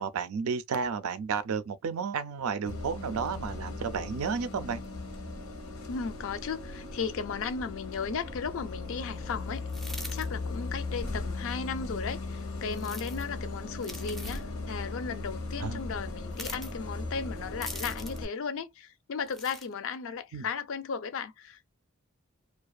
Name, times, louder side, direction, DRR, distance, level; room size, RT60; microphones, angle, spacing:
voice 1, 0.0-4.8 15.6-15.8 20.3-20.5, right 5 dB, 85° right, 0.4 m, -32 dB
Bus, 2.6-18.2, left 3 dB, 90° left, 0.9 m, -38 dB
voice 2, 5.9-9.7 10.1-21.7, left 5 dB, 65° left, 0.4 m, -35 dB
sound 1, 9.7-10.3 12.7-13.2 13.8-14.4 16.3-16.7 17.6-18.2 19.3-19.7, equal, ahead, 0.4 m, -42 dB
2.4 x 2.3 x 2.3 m
head